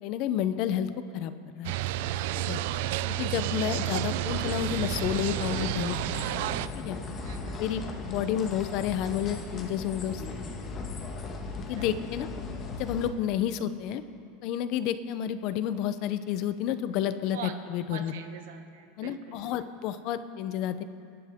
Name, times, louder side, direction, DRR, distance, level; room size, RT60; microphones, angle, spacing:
voice 1, 0.0-1.7 2.5-2.6 3.2-6.4 6.7-7.0 7.6-10.2 11.7-12.3 12.8-14.0 14.4-17.4 17.7-18.1 19.0-20.8, left 10 dB, 45° left, 12 dB, 0.7 m, -30 dB
sound 1, 1.6-6.7, right 12 dB, 60° right, 0.4 m, -31 dB
sound 2, 4.3-13.1, left 3 dB, 25° left, 1.4 m, -37 dB
voice 2, 7.2-7.6 11.7-12.0 17.3-19.6, right 7 dB, 80° right, 6 dB, 1.4 m, -44 dB
26.5 x 11.0 x 3.7 m, 2.3 s
supercardioid pair, 160°, 0 cm